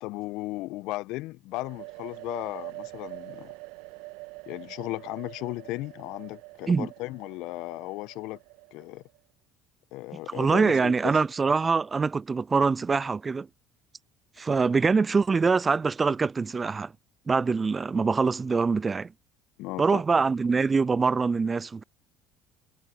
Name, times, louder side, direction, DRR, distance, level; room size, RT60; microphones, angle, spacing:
voice 1, 0.0-3.5 4.5-8.4 8.7-9.0 9.9-11.1 19.6-20.0, left 20 dB, 65° left, 1.1 m, -36 dB
sound 1, 1.5-9.2, right 25 dB, 65° right, 1.7 m, -45 dB
voice 2, 10.3-13.5 14.4-16.9 17.3-19.1 19.8-21.8, right 4 dB, 25° right, 0.5 m, -24 dB
hypercardioid pair, 60°, 0 cm